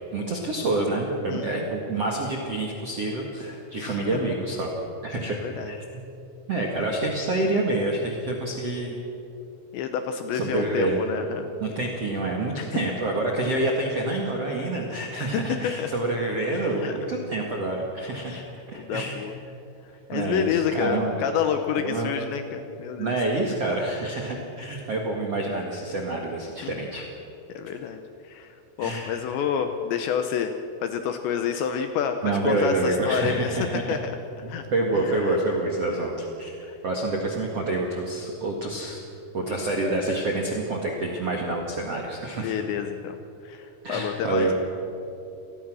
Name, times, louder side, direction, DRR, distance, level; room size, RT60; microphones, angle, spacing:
voice 1, 0.0-4.7 5.0-5.3 5.6-5.8 6.5-9.0 10.3-11.0 11.6-19.2 20.1-21.2 21.8-22.1 23.0-27.0 28.8-29.2 32.2-33.8 34.7-36.6 36.8-39.0 39.3-42.5 43.8-44.5, right 2 dB, 60° right, -1 dB, 1.6 m, -27 dB
voice 2, 1.3-1.7 3.8-4.0 5.3-5.7 9.7-11.5 12.5-12.8 15.2-15.9 16.5-17.0 18.3-18.5 18.8-19.3 20.1-23.2 26.6-26.7 27.5-30.5 30.8-32.2 32.4-34.1 34.5-34.7 35.0-35.4 35.9-36.1 36.6-36.8 42.4-43.2 43.4-44.5, left 8 dB, 75° left, 7 dB, 2.7 m, -29 dB
28.5 x 19.5 x 6.3 m, 2.9 s
omnidirectional pair, 5.9 m